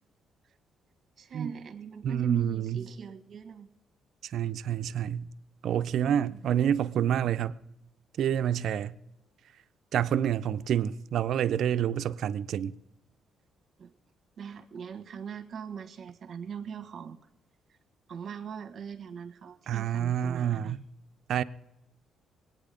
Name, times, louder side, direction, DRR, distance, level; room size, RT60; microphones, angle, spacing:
voice 1, 1.2-3.7 13.8-13.9 14.4-17.2 18.1-20.8, right 6 dB, 55° right, 1.4 m, -40 dB
voice 2, 2.0-2.8 4.2-5.3 5.6-7.6 8.2-9.0 9.9-12.7 19.7-20.8 21.3-21.4, right 9 dB, 70° right, 0.5 m, -28 dB
21.0 x 9.1 x 5.1 m
cardioid pair, 90°, 0 cm